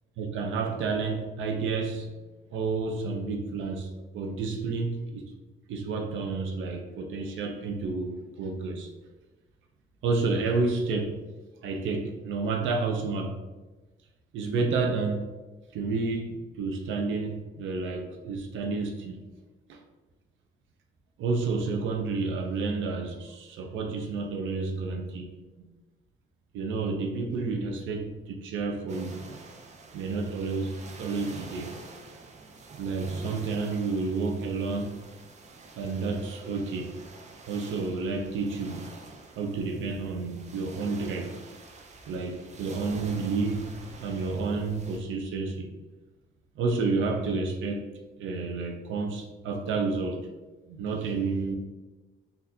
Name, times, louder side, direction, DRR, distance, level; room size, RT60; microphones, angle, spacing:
voice 1, 0.2-2.1 2.5-5.3 5.7-8.9 10.0-11.2 11.6-13.4 14.3-15.3 15.7-19.2 19.7-19.8 21.2-25.3 26.5-29.2 29.9-31.8 32.8-35.0 35.8-36.9 37.5-38.8 39.4-41.3 42.1-43.7 44.0-45.7 46.6-47.9 48.2-50.3 50.7-51.5, right 4 dB, 80° right, 4 dB, 0.6 m, -30 dB
sound 1, 28.9-45.0, right 3 dB, 35° right, 0.6 m, -47 dB
4.1 x 2.6 x 2.7 m, 1.2 s
cardioid pair, 90°, 20 cm